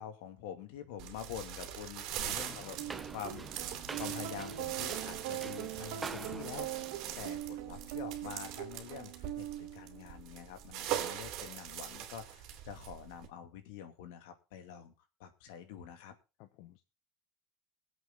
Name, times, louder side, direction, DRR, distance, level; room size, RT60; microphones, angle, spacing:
voice 1, 0.0-2.8 3.0-14.9 15.2-16.1, left 8 dB, 85° left, 8 dB, 2.5 m, -46 dB
sound 1, 1.0-13.3, right 11 dB, 55° right, 2.9 m, -42 dB
voice 2, 2.1-2.8 16.4-16.8, left 16 dB, 65° left, 10 dB, 1.1 m, -57 dB
sound 2, 2.2-7.3, right 4 dB, 15° right, 0.7 m, -47 dB
sound 3, 2.8-10.2, right 14 dB, 75° right, 1.5 m, -42 dB
21.5 x 8.1 x 3.9 m, 0.30 s
supercardioid pair, 140°, 0 cm